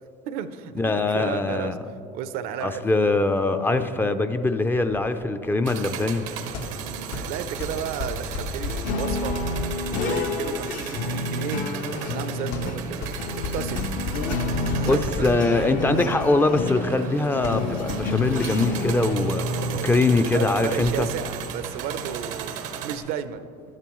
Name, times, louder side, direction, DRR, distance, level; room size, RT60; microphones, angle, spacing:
voice 1, 0.2-0.7 1.1-1.7 2.1-3.0 6.8-9.4 9.6-11.6 12.0-13.1 13.5-16.1 19.5-19.9 20.3-23.5, right 8 dB, 70° right, 12 dB, 0.6 m, -33 dB
voice 2, 0.8-1.8 2.6-6.2 14.6-19.5 19.8-21.1, left 2 dB, 15° left, 8 dB, 0.4 m, -22 dB
sound 1, 4.8-20.9, left 3 dB, 85° left, 1.2 m, -36 dB
sound 2, 5.6-23.0, right 8 dB, 90° right, 0.9 m, -36 dB
sound 3, 8.7-19.8, left 2 dB, 55° left, 0.7 m, -30 dB
12.5 x 10.5 x 3.1 m, 2.7 s
cardioid pair, 120°, 16 cm